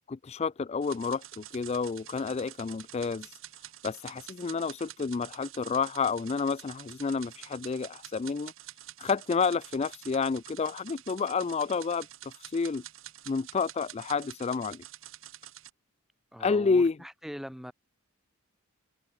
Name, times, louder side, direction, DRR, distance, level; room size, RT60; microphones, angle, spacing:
voice 1, 0.1-3.4 3.8-8.5 9.0-12.8 13.3-14.8 16.4-17.0, left 5 dB, 30° left, 0.3 m, -30 dB
sound 1, 0.8-15.7, right 13 dB, 60° right, 1.0 m, -48 dB
voice 2, 16.3-17.7, equal, ahead, 1.5 m, -41 dB
head